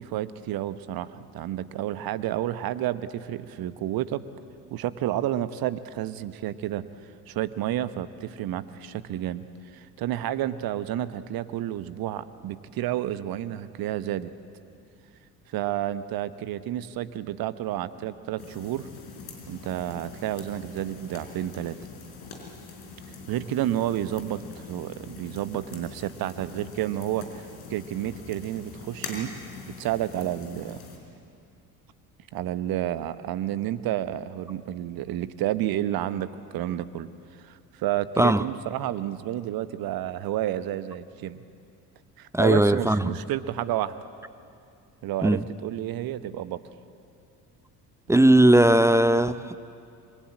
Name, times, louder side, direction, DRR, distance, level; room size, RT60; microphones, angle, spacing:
voice 1, 0.0-4.2 4.7-6.8 7.3-9.5 9.7-14.3 15.5-18.9 19.5-21.8 23.3-29.3 29.8-30.8 32.3-37.1 37.4-41.4 42.2-44.0 45.0-46.6, right 12 dB, 45° right, 14 dB, 1.2 m, -30 dB
sound 1, 18.4-31.0, left 4 dB, 50° left, 5.1 m, -43 dB
voice 2, 42.3-43.2 45.2-45.4 48.1-49.6, right 1 dB, 5° right, 14 dB, 0.6 m, -18 dB
26.0 x 23.0 x 8.6 m, 2.4 s
figure-of-eight pair, 60°, 50 cm